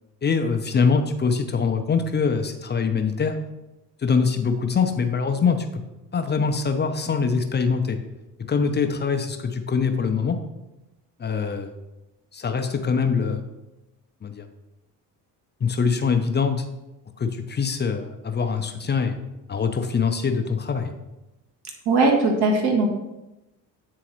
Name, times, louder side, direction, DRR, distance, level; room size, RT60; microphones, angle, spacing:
voice 1, 0.2-3.4 4.0-5.7 6.1-8.0 8.5-10.4 11.2-11.7 12.3-13.4 14.2-14.4 15.6-16.6 17.2-19.2 19.5-20.9, left 5 dB, 20° left, 7 dB, 0.5 m, -23 dB
voice 2, 21.9-22.9, right 3 dB, 55° right, 2 dB, 1.4 m, -19 dB
8.3 x 3.8 x 3.0 m, 0.98 s
hypercardioid pair, 55°, 48 cm